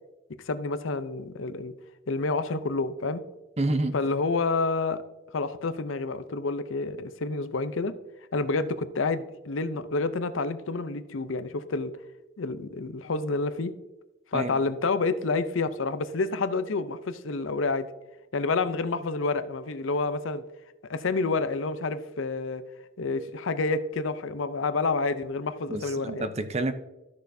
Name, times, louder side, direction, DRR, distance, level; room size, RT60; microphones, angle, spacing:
voice 1, 0.5-1.7 2.1-3.2 3.9-5.0 5.3-7.9 8.3-11.9 12.4-13.7 14.3-17.9 18.3-20.4 20.9-22.6 23.0-26.3, left 3 dB, 80° left, 12 dB, 0.6 m, -28 dB
voice 2, 3.6-3.9 14.3-14.6 25.7-26.7, right 2 dB, 30° right, 10 dB, 0.6 m, -28 dB
14.0 x 6.4 x 2.7 m, 1.1 s
head